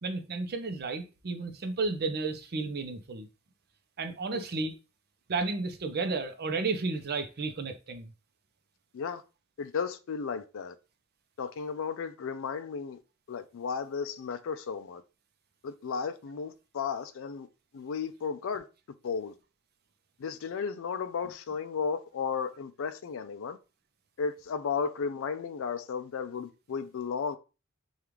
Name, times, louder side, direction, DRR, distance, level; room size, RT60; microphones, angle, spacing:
voice 1, 0.0-3.3 4.0-4.7 5.3-8.1, right 3 dB, 45° right, 0.6 m, -32 dB
voice 2, 9.6-10.7 11.4-13.0 13.3-15.0 15.6-17.5 17.7-18.7 19.0-19.3 20.2-23.6 24.2-27.4, left 6 dB, 65° left, 0.4 m, -34 dB
5.0 x 2.4 x 3.0 m
head